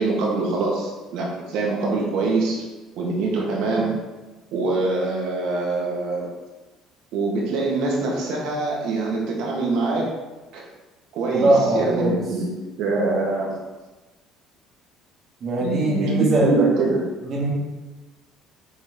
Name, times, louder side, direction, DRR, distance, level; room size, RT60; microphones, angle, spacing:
voice 1, 0.0-2.7 3.0-4.0 4.5-6.3 7.1-10.2 10.5-10.6 11.1-12.5 12.8-13.6 15.6-17.1, right 3 dB, 75° right, -2 dB, 1.7 m, -24 dB
voice 2, 11.3-12.2 15.4-16.5 17.2-17.5, right 1 dB, 50° right, -2 dB, 1.7 m, -21 dB
6.2 x 4.1 x 3.6 m, 1.2 s
cardioid pair, 105°, 0 cm